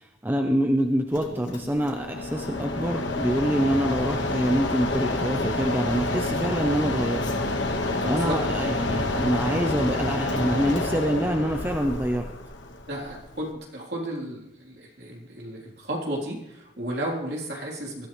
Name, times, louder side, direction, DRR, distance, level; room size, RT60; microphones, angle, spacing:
voice 1, 0.0-7.2 7.8-12.3, equal, 10° right, 3 dB, 0.8 m, -26 dB
Mechanisms, 1.1-13.5, left 2 dB, 85° left, 1.7 m, -29 dB
voice 2, 8.0-8.4 12.9-18.1, right 1 dB, 60° right, -2 dB, 4.0 m, -33 dB
sound 1, 8.7-11.9, left 4 dB, 90° right, 5.4 m, -46 dB
22.5 x 13.5 x 3.4 m, 0.81 s
head